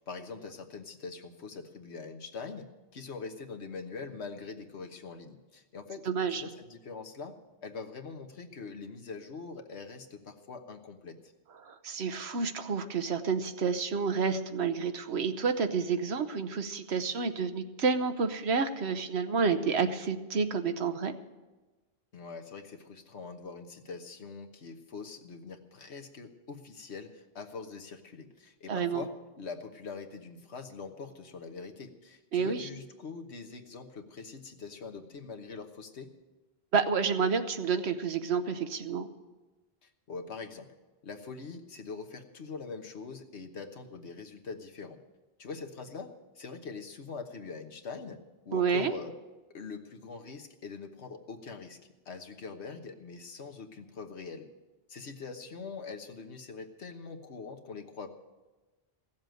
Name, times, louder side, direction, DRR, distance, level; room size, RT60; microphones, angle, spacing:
voice 1, 0.0-11.3 22.1-36.1 39.8-40.7 41.0-45.0 45.4-48.2 48.4-49.1 49.5-51.8 52.0-54.5 54.9-58.1, left 4 dB, 85° left, 5 dB, 1.5 m, -43 dB
voice 2, 6.0-6.4 11.6-21.1 28.7-29.0 32.3-32.7 36.7-39.1 48.5-48.9, right 5 dB, 80° right, 9 dB, 1.2 m, -29 dB
16.0 x 7.3 x 9.1 m, 1.2 s
omnidirectional pair, 1.1 m